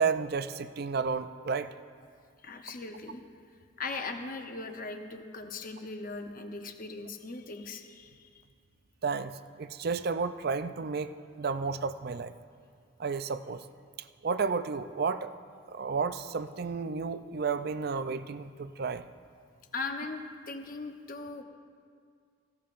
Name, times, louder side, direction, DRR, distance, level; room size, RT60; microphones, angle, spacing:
voice 1, 0.0-1.7 9.0-12.3 13.0-13.6 14.2-15.3 15.7-19.0, right 5 dB, 50° right, 12 dB, 0.4 m, -32 dB
voice 2, 2.4-3.2 3.8-8.4 19.7-21.4, left 3 dB, 40° left, 5 dB, 0.8 m, -39 dB
18.0 x 16.5 x 2.5 m, 2.1 s
head